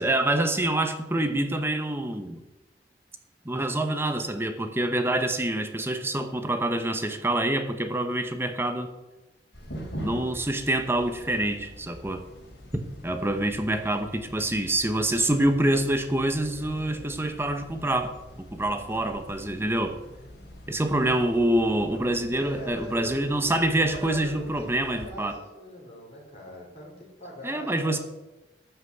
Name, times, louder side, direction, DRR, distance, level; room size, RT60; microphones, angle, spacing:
voice 1, 0.0-2.4 3.4-8.9 10.0-12.2 12.7-20.0 20.7-25.4 27.4-28.0, right 1 dB, 15° right, 7 dB, 1.0 m, -26 dB
sound 1, 9.5-25.1, equal, 70° left, 4.0 m, -44 dB
voice 2, 22.3-28.0, equal, 35° left, -4 dB, 4.7 m, -40 dB
13.5 x 6.0 x 8.1 m, 1.0 s
head